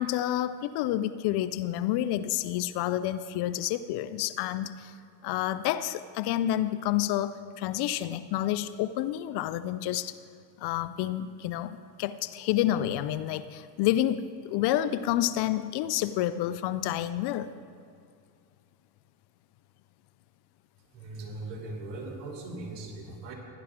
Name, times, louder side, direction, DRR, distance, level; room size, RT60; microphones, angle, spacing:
voice 1, 0.0-4.9 5.2-10.2 10.6-17.5, left 12 dB, 55° left, 13 dB, 0.6 m, -29 dB
voice 2, 20.9-23.3, right 2 dB, 60° right, 0 dB, 2.8 m, -39 dB
16.5 x 11.0 x 3.7 m, 2.3 s
hypercardioid pair, 75°, 47 cm